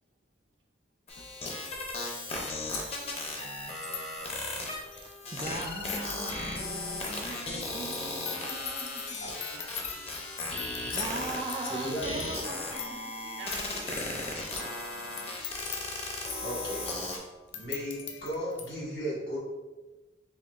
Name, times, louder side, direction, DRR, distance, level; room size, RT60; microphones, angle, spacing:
sound 1, 1.1-17.2, left 2 dB, 35° left, 0.5 m, -36 dB
sound 2, 1.2-1.3 2.0-2.1 2.3-18.7, left 7 dB, 90° left, 0.5 m, -43 dB
voice 1, 4.8-9.2 10.1-13.8, right 2 dB, 25° right, 2 dB, 0.3 m, -41 dB
voice 2, 9.5-10.3 13.4-14.3 14.9-15.3, right 3 dB, 90° right, 0 dB, 0.7 m, -47 dB
voice 3, 11.7-12.3 16.4-16.9 17.5-19.4, equal, 65° left, -5 dB, 1.4 m, -35 dB
4.3 x 3.0 x 2.3 m, 1.2 s
head